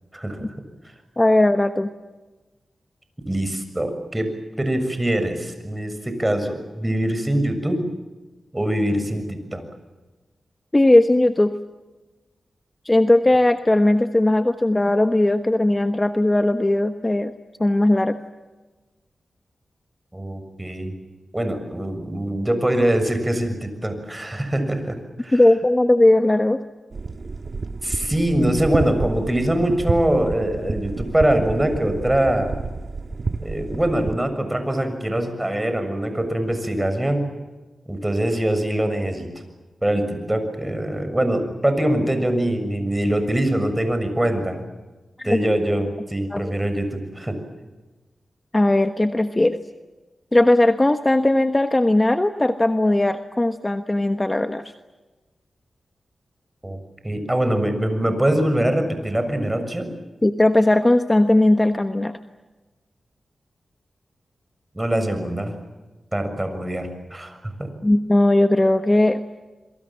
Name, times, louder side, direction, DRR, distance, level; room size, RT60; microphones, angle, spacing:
voice 1, 0.1-0.5 0.8-0.9 3.3-4.3 4.6-7.8 8.5-9.6 20.1-20.9 21.3-25.4 27.8-32.6 33.4-37.2 37.9-39.3 39.8-44.6 45.2-47.4 56.6-59.9 64.7-65.5 66.1-67.7, right 1 dB, 15° right, 7 dB, 6.7 m, -23 dB
voice 2, 1.2-1.9 10.7-11.5 12.8-17.3 17.6-18.2 25.3-26.6 45.2-45.4 46.3-46.4 48.5-49.6 50.3-54.6 60.2-62.2 67.8-69.2, left 1 dB, 20° left, 8 dB, 1.3 m, -18 dB
sound 1, 26.9-34.2, right 4 dB, 55° right, 1.7 m, -30 dB
27.5 x 23.5 x 7.4 m, 1.2 s
cardioid pair, 65°, 0 cm